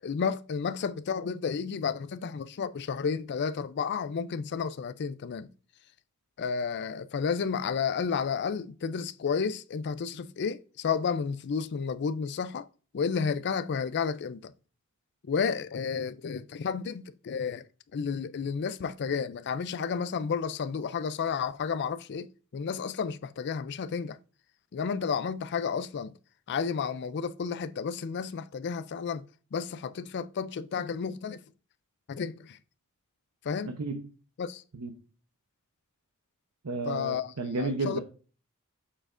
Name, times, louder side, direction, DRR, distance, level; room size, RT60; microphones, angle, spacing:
voice 1, 0.0-5.5 6.4-12.7 12.9-14.5 15.2-17.7 17.9-24.2 24.7-26.1 26.5-29.2 29.5-31.4 32.1-32.6 33.4-33.8 34.4-34.6 36.8-38.0, left 6 dB, 50° left, 0.4 m, -32 dB
voice 2, 33.7-34.1 34.8-34.9 36.6-38.0, right 3 dB, 90° right, 0.8 m, -32 dB
7.4 x 6.5 x 2.5 m
head